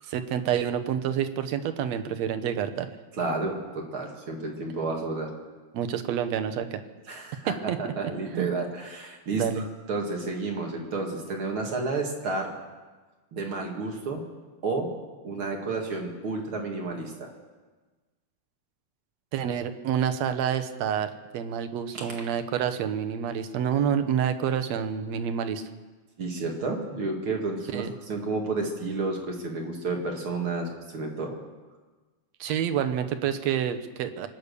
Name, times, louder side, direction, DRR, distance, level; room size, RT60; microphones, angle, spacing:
voice 1, 0.1-2.9 5.7-6.8 7.5-7.9 8.3-8.5 9.3-9.6 19.3-25.6 27.7-27.9 32.4-34.3, right 8 dB, 70° right, 8 dB, 2.1 m, -28 dB
voice 2, 3.2-5.3 7.1-12.5 13.3-14.2 14.6-14.9 15.2-17.3 22.0-22.1 26.2-31.4, right 3 dB, 50° right, 1 dB, 2.7 m, -31 dB
25.0 x 8.6 x 6.8 m, 1.3 s
omnidirectional pair, 3.3 m